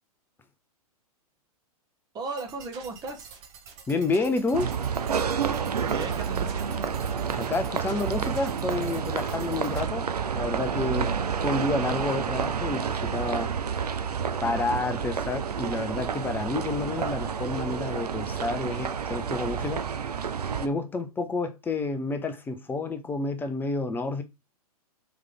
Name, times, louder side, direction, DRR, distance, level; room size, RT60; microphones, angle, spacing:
voice 1, 2.1-3.3 5.8-6.9, right 3 dB, 20° right, 1.0 m, -37 dB
sound 1, 2.4-9.9, right 6 dB, 40° right, 1.2 m, -48 dB
voice 2, 3.9-4.7 7.4-10.1 10.3-13.5 14.4-19.8 20.6-24.2, left 3 dB, 10° left, 0.6 m, -29 dB
sound 2, 4.5-20.7, right 7 dB, 85° right, 0.5 m, -29 dB
3.5 x 3.2 x 3.8 m
hypercardioid pair, 110°, 19 cm